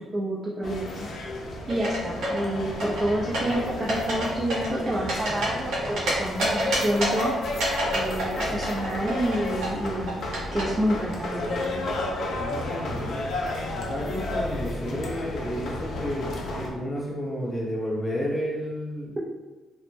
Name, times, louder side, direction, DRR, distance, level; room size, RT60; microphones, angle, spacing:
voice 1, 0.1-0.8 1.7-7.3 7.9-10.2 10.5-11.8, right 1 dB, 30° right, -5 dB, 0.4 m, -28 dB
sound 1, 0.6-16.7, left 2 dB, 65° left, 0.4 m, -32 dB
sound 2, 1.7-2.4 2.8-3.6 3.9-4.3 4.5-6.1 6.4-7.2 7.6-10.6, right 1 dB, 80° right, 0.8 m, -27 dB
voice 2, 12.3-13.3 13.7-19.2, equal, 20° left, -5 dB, 0.9 m, -31 dB
2.1 x 2.0 x 3.1 m, 1.2 s
cardioid pair, 90°, 0 cm